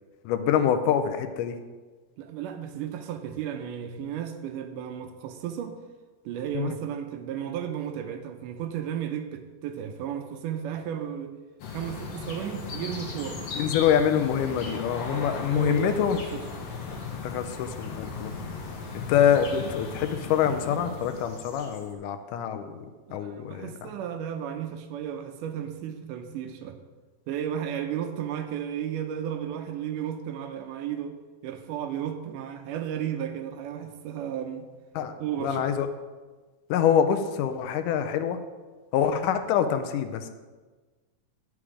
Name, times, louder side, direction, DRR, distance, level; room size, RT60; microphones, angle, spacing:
voice 1, 0.3-1.6 6.5-6.8 13.5-16.2 17.2-18.3 18.9-22.8 23.1-23.7 35.0-35.1 35.4-35.9 36.7-38.4 38.9-40.3, left 8 dB, 80° left, 9 dB, 2.1 m, -25 dB
voice 2, 2.2-5.7 6.3-11.4 11.7-13.4 15.0-16.4 23.1-26.8 27.3-31.2 31.4-34.7 35.2-35.7, right 9 dB, 80° right, 7 dB, 2.2 m, -34 dB
sound 1, 11.6-21.9, left 4 dB, 60° left, 2.1 m, -37 dB
10.0 x 6.1 x 4.9 m, 1.3 s
omnidirectional pair, 3.7 m